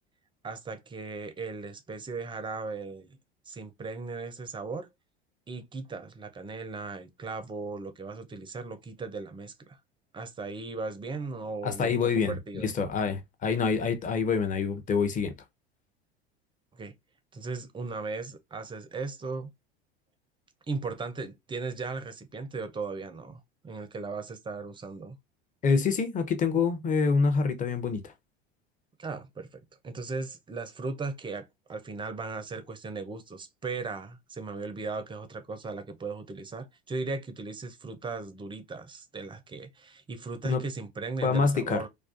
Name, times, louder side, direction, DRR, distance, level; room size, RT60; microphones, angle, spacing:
voice 1, 0.4-3.2 3.5-4.9 5.5-9.8 10.1-12.7 16.7-16.9 17.3-19.5 20.7-25.2 29.0-41.9, right 3 dB, 15° right, 0.4 m, -37 dB
voice 2, 11.6-15.3 25.6-28.1 40.4-40.6 41.2-41.8, left 5 dB, 25° left, 0.6 m, -26 dB
2.3 x 2.3 x 2.4 m
hypercardioid pair, 80°, 31 cm